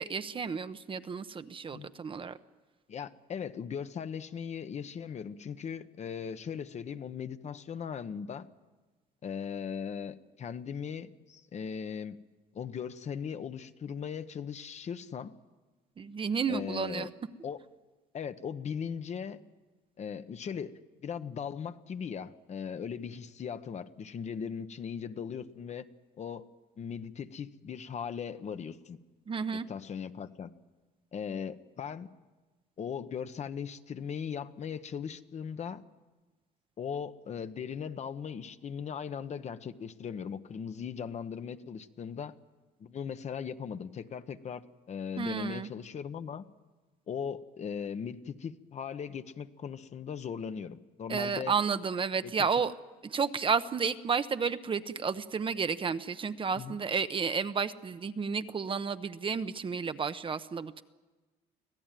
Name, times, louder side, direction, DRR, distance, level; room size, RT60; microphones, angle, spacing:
voice 1, 0.0-2.3 16.0-17.1 29.3-29.7 45.2-45.7 51.1-52.7 53.0-60.8, right 6 dB, 30° right, 11 dB, 0.8 m, -32 dB
voice 2, 2.9-8.5 9.2-12.2 12.5-15.3 16.5-17.1 17.4-17.6 18.1-19.4 20.0-25.9 26.2-26.5 26.8-29.0 29.4-30.5 31.1-32.1 32.8-35.8 36.8-42.4 42.8-46.4 47.1-51.5 52.2-52.3 56.5-56.8, left 7 dB, 40° left, 10 dB, 1.0 m, -38 dB
25.5 x 16.0 x 9.1 m, 1.2 s
cardioid pair, 110°, 17 cm